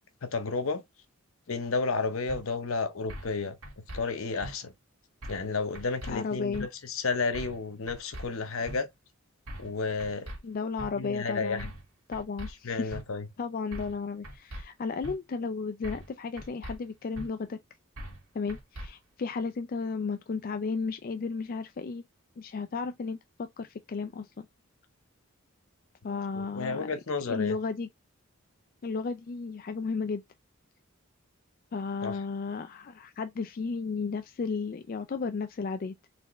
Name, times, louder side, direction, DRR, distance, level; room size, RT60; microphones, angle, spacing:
voice 1, 0.2-0.8 1.5-3.6 3.9-4.7 5.3-8.9 9.6-10.3 10.9-11.7 12.6-13.3 26.1-27.6 32.0-32.2, left 4 dB, 70° left, 0.8 m, -32 dB
sound 1, 2.3-2.4 3.1-3.3 3.6-4.0 4.4-4.5 5.2-5.5 5.7-6.1 6.5-6.7 7.3-7.6 7.9-8.3 8.7-8.8 9.5-9.7 10.0-10.4 10.8-10.9 11.6-11.9 12.1-12.5 12.9-13.0 13.7-14.0 14.2-14.6 15.0-15.2 15.8-16.1 16.4-16.8 17.2-17.3 18.0-18.2 18.5-18.9, right 1 dB, 70° right, 1.8 m, -40 dB
voice 2, 6.1-6.7 10.4-11.7 12.1-12.9 13.4-17.6 18.3-22.0 22.4-24.5 26.0-26.9 27.3-27.9 28.8-30.2 31.7-35.9, left 4 dB, 40° left, 0.3 m, -34 dB
4.2 x 3.4 x 3.0 m
head